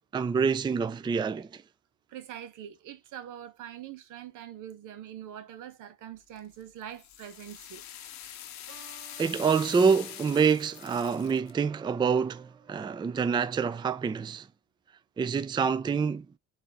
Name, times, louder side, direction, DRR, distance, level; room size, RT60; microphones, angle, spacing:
voice 1, 0.1-1.5 9.2-14.5 15.2-16.3, right 6 dB, 15° right, 0.3 m, -26 dB
voice 2, 2.1-7.8, right 10 dB, 85° right, 1.0 m, -43 dB
sound 1, 6.4-11.5, left 10 dB, 70° left, 0.7 m, -44 dB
sound 2, 8.7-14.1, right 8 dB, 65° right, 2.5 m, -57 dB
4.2 x 2.7 x 3.5 m
cardioid pair, 90°, 30 cm